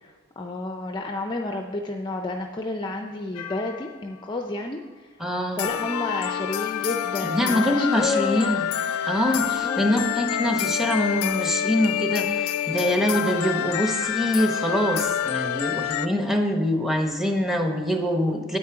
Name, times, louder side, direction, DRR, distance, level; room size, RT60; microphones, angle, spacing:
voice 1, 0.0-5.1 5.6-8.6 9.4-10.1, left 2 dB, 20° left, 4 dB, 0.4 m, -31 dB
sound 1, 3.3-4.0 5.6-16.1, left 10 dB, 85° left, 0.4 m, -27 dB
voice 2, 5.2-5.7 7.2-8.7 9.1-18.6, equal, ahead, 3 dB, 0.9 m, -24 dB
9.4 x 8.4 x 4.8 m, 1.5 s
head